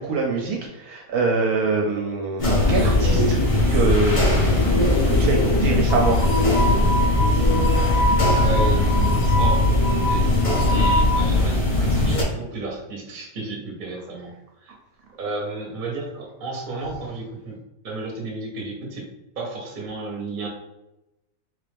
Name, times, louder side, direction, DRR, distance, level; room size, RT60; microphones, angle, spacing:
voice 1, 0.0-3.4 3.7-6.2, right 3 dB, 70° right, 0 dB, 0.9 m, -24 dB
sound 1, 2.4-12.2, left 2 dB, 45° left, 0.4 m, -19 dB
sound 2, 5.9-11.2, equal, 70° left, 0.7 m, -26 dB
voice 2, 8.3-9.6 10.0-14.7 15.2-17.6 17.8-19.1 19.4-20.5, right 3 dB, 45° right, -1 dB, 0.7 m, -32 dB
3.4 x 2.4 x 3.3 m, 0.96 s
omnidirectional pair, 1.8 m